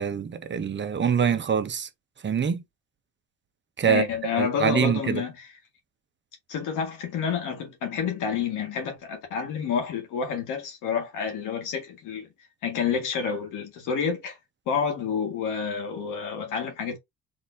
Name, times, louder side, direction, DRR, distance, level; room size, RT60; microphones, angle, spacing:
voice 1, 0.0-1.9 2.2-2.6 3.8-4.1 4.3-5.2, right 7 dB, 40° right, 0.9 m, -24 dB
voice 2, 3.8-5.6 6.5-12.3 12.6-14.4 14.7-17.0, left 6 dB, 90° left, 1.8 m, -29 dB
4.1 x 3.7 x 2.7 m
cardioid pair, 90°, 30 cm